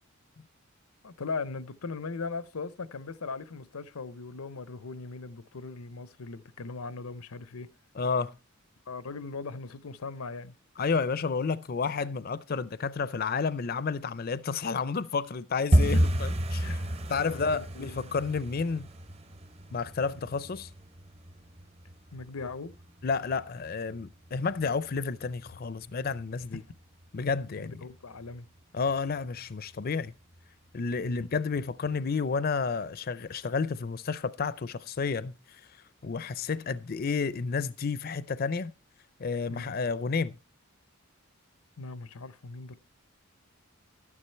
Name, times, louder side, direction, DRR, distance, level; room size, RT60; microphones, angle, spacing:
voice 1, 1.0-7.7 8.9-10.6 15.9-16.0 16.6-17.0 17.2-18.2 22.1-22.7 26.5-26.6 27.6-28.5 31.0-31.3 39.5-39.7 41.8-42.7, left 4 dB, 90° left, 0.8 m, -39 dB
voice 2, 7.9-8.3 10.8-16.8 17.1-18.9 19.7-20.7 23.0-26.6 27.1-27.7 28.7-30.1 30.7-35.6 36.0-38.7 39.2-40.4, left 5 dB, 45° left, 0.5 m, -31 dB
sound 1, 15.7-26.4 26.7-27.4 27.6-28.0 28.2-28.6 28.9-29.0 29.5-30.0 30.4-30.5 31.0-31.1, equal, 30° right, 0.7 m, -32 dB
12.0 x 9.8 x 4.4 m
head